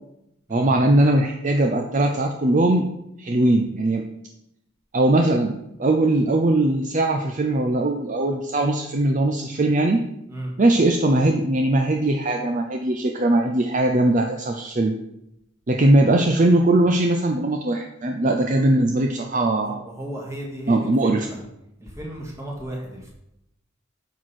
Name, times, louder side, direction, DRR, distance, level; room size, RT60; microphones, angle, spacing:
voice 1, 0.5-2.9 3.2-4.0 4.9-10.0 10.6-14.9 15.7-19.8 20.7-21.3, right 1 dB, 40° right, 4 dB, 0.5 m, -20 dB
voice 2, 19.6-21.4 21.8-23.1, right 1 dB, 15° right, -2 dB, 2.0 m, -35 dB
9.1 x 6.3 x 4.3 m, 0.84 s
head